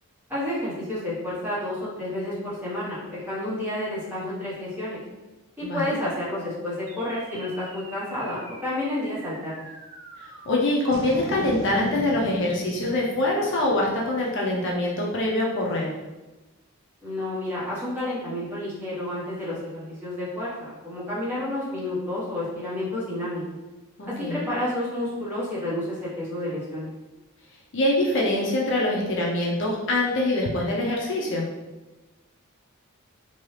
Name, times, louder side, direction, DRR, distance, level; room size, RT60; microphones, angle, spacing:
voice 1, 0.3-5.0 5.6-9.6 17.0-23.4 24.3-26.9, left 1 dB, 10° right, -10 dB, 1.0 m, -30 dB
voice 2, 5.6-6.0 10.2-15.9 24.0-24.5 27.7-31.5, left 1 dB, 55° left, -3 dB, 0.5 m, -24 dB
sound 1, 6.9-15.5, right 2 dB, 60° right, 0.4 m, -40 dB
2.7 x 2.3 x 3.1 m, 1.1 s
head